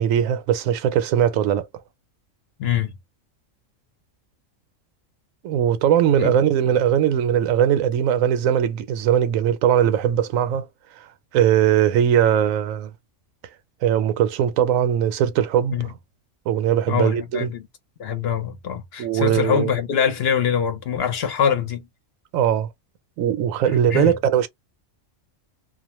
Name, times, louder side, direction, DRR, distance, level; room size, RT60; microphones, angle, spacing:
voice 1, 0.0-1.7 5.4-10.7 11.0-11.1 11.3-12.9 13.8-15.9 16.5-17.5 19.0-19.7 22.3-22.7 23.2-24.5, right 9 dB, 80° right, 1.0 m, -20 dB
voice 2, 2.6-2.9 6.2-6.3 15.7-15.9 16.9-17.6 18.0-21.9 23.6-24.1, left 8 dB, 60° left, 0.8 m, -24 dB
2.4 x 2.1 x 3.0 m
omnidirectional pair, 1.4 m